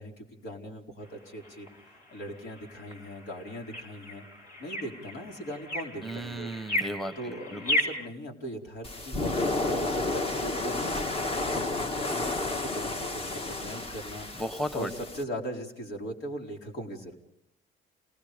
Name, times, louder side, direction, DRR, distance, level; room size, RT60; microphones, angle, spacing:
voice 1, 0.0-4.2 4.6-6.5 7.2-11.1 11.5-14.3 14.7-17.2, equal, 75° left, 2 dB, 4.3 m, -40 dB
sound 1, 1.0-8.1, left 1 dB, 55° left, 6.2 m, -35 dB
voice 2, 6.0-7.6 14.4-14.9, equal, ahead, 11 dB, 1.2 m, -35 dB
sound 2, 8.8-15.2, left 2 dB, 35° left, 1.6 m, -31 dB
29.0 x 19.5 x 5.2 m, 0.77 s
cardioid pair, 110°, 17 cm